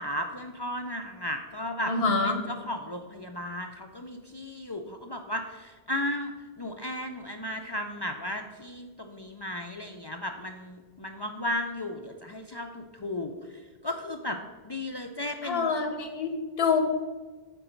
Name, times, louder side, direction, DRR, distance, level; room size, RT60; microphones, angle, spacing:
voice 1, 0.0-14.4 14.6-15.7, left 1 dB, 45° left, 4 dB, 0.3 m, -35 dB
voice 2, 1.9-2.4 15.4-16.8, left 4 dB, 70° left, 5 dB, 1.2 m, -26 dB
9.0 x 3.9 x 5.1 m, 1.3 s
omnidirectional pair, 1.0 m